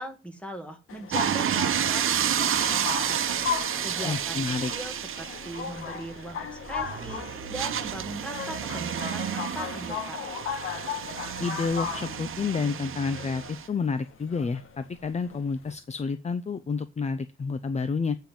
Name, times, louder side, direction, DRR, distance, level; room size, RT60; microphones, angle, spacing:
voice 1, 0.0-3.2 3.8-10.3, right 1 dB, 5° left, 5 dB, 2.2 m, -40 dB
sound 1, 0.9-15.7, left 7 dB, 80° left, 1.8 m, -37 dB
sound 2, 1.1-13.7, right 9 dB, 75° right, 0.9 m, -30 dB
voice 2, 4.0-4.7 11.4-18.2, left 4 dB, 30° left, 12 dB, 0.6 m, -29 dB
8.6 x 5.6 x 7.7 m, 0.29 s
cardioid pair, 105°, 21 cm